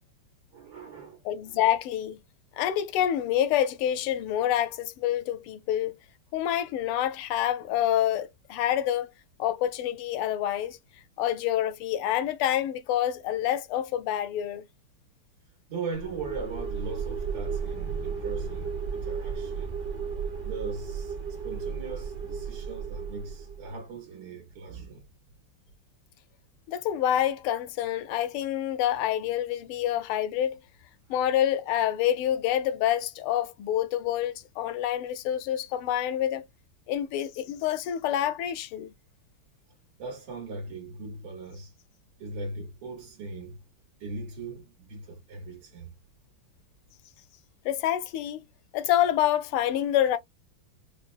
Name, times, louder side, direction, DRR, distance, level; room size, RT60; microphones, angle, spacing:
voice 1, 0.5-1.2 1.5-1.6 15.7-19.7 20.4-25.1 40.0-41.7 42.2-43.6 44.0-45.9, right 3 dB, 85° right, 2.4 m, -39 dB
voice 2, 1.2-2.2 2.6-6.0 6.3-9.1 9.4-10.8 11.2-14.6 26.7-30.6 31.1-36.4 36.9-38.9 47.6-48.4 48.7-50.2, left 11 dB, 85° left, 1.5 m, -27 dB
sound 1, 15.9-23.7, right 6 dB, 40° right, 0.8 m, -34 dB
5.2 x 2.2 x 2.5 m
omnidirectional pair, 2.4 m